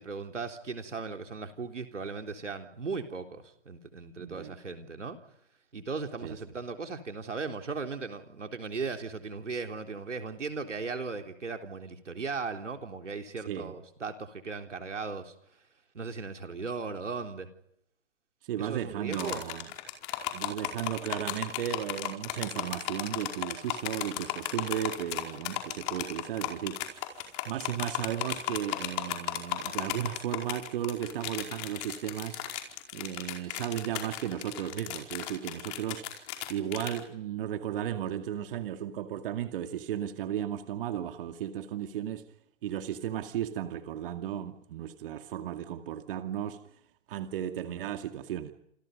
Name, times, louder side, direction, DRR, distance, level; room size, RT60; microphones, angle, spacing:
voice 1, 0.0-5.2 5.7-15.3 15.9-17.5 18.6-19.4, right 4 dB, 85° right, 5 dB, 3.9 m, -37 dB
voice 2, 4.2-4.5 6.2-6.4 13.5-13.7 18.5-19.7 20.3-32.4 32.9-36.2 36.5-42.2 42.6-46.6 47.1-48.5, right 11 dB, 50° right, 7 dB, 2.3 m, -35 dB
sound 1, 19.1-37.0, left 13 dB, 35° left, 4.8 m, -35 dB
28.5 x 28.5 x 5.3 m, 0.74 s
hypercardioid pair, 130°, 35 cm